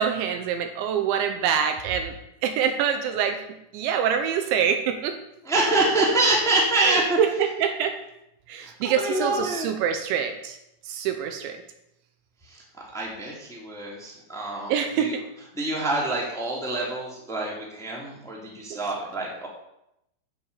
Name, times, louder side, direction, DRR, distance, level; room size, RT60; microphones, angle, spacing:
voice 1, 0.0-2.1 2.4-3.4 3.7-5.2 6.9-7.9 8.5-10.6 10.9-11.6 14.7-15.2 18.7-18.8, right 8 dB, 75° right, 6 dB, 3.1 m, -25 dB
voice 2, 5.4-7.2 8.6-9.7 12.5-12.6 12.9-14.7 15.0-15.1 15.5-19.5, right 2 dB, ahead, -3 dB, 2.2 m, -26 dB
11.0 x 7.4 x 8.4 m, 0.83 s
omnidirectional pair, 5.6 m